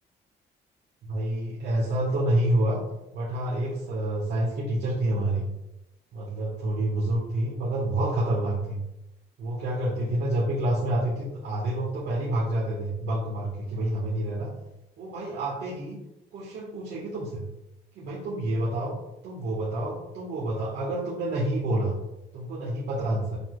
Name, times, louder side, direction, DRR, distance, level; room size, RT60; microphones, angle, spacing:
voice 1, 1.0-2.8 3.1-5.5 6.1-8.8 9.4-14.5 15.0-16.0 16.3-17.4 18.0-18.9 19.2-21.9 22.3-23.4, right 1 dB, 75° right, -5 dB, 1.7 m, -28 dB
7.6 x 6.2 x 2.5 m, 0.94 s
cardioid pair, 150°, 18 cm